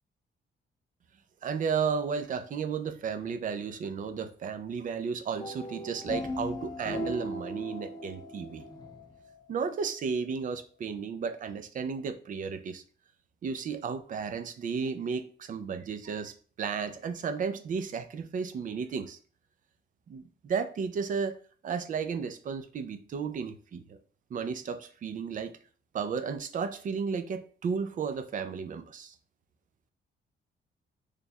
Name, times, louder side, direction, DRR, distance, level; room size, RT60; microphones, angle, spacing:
voice 1, 1.4-8.6 9.5-12.8 13.4-19.2 20.1-21.4 21.6-24.0 24.3-25.5 25.9-29.1, right 6 dB, 45° right, 8 dB, 0.4 m, -33 dB
sound 1, 5.3-9.6, left 1 dB, 20° left, 0.4 m, -38 dB
3.2 x 2.3 x 4.1 m, 0.43 s
wide cardioid pair, 155°, 20 cm